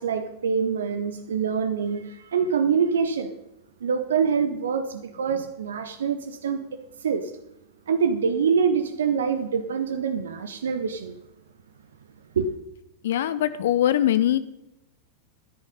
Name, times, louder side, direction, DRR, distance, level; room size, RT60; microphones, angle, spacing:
voice 1, 0.0-3.3 3.8-6.6 7.0-7.3 7.9-11.2 12.3-12.5, right 6 dB, 65° right, 9 dB, 0.8 m, -25 dB
voice 2, 13.0-14.4, left 11 dB, 60° left, 14 dB, 0.5 m, -22 dB
13.5 x 9.8 x 5.4 m, 0.87 s
figure-of-eight pair, 90°, 0 cm